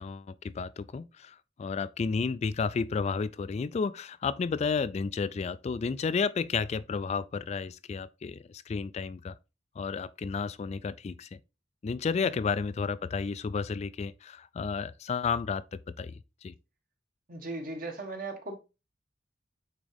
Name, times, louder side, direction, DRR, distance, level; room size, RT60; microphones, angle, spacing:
voice 1, 0.0-9.4 9.8-11.4 11.8-16.5, left 5 dB, 35° left, 0.3 m, -32 dB
voice 2, 17.3-18.5, right 2 dB, 50° right, 1.6 m, -37 dB
8.8 x 3.7 x 3.4 m
head